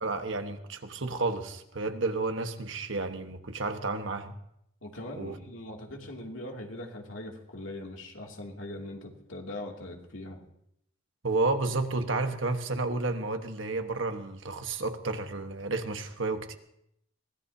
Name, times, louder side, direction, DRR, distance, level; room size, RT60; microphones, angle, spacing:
voice 1, 0.0-4.3 5.2-5.4 11.2-16.6, right 3 dB, 65° right, 6 dB, 1.4 m, -31 dB
voice 2, 4.8-10.4, left 1 dB, 70° left, 0 dB, 2.7 m, -41 dB
23.0 x 17.5 x 2.8 m, 0.76 s
head